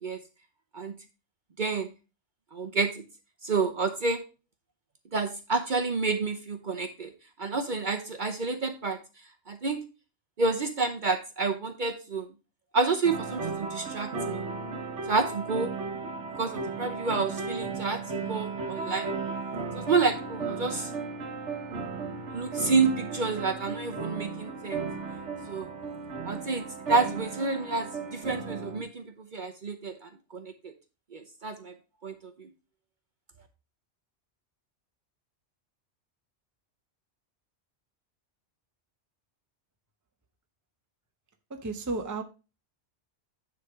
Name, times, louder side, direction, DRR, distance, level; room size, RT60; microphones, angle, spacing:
voice 1, 1.6-1.9 2.5-3.0 3.4-4.2 5.1-7.1 7.4-9.0 9.5-9.8 10.4-12.3 12.7-14.4 15.1-15.7 16.4-19.1 19.7-20.9 22.3-24.9 25.5-25.7 26.2-30.7 31.1-31.7 32.0-32.5, right 4 dB, 50° right, 0.8 m, -29 dB
sound 1, 13.0-28.8, right 4 dB, 80° right, 1.5 m, -35 dB
voice 2, 41.5-42.2, right 3 dB, 20° right, 0.7 m, -33 dB
9.8 x 3.7 x 4.7 m
omnidirectional pair, 1.2 m